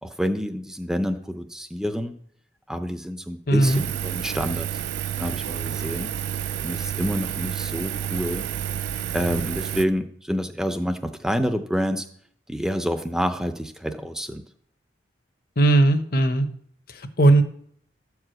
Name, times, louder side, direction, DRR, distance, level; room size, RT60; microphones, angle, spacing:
voice 1, 0.0-2.1 2.7-4.7 5.2-6.1 6.6-8.5 9.1-12.1 12.5-14.4, equal, 5° right, 7 dB, 0.5 m, -28 dB
voice 2, 3.5-3.8 15.6-16.5 16.9-17.4, right 2 dB, 55° left, 9 dB, 0.9 m, -18 dB
Engine, 3.6-9.8, right 9 dB, 70° right, 0.4 m, -30 dB
13.0 x 4.8 x 7.7 m, 0.64 s
head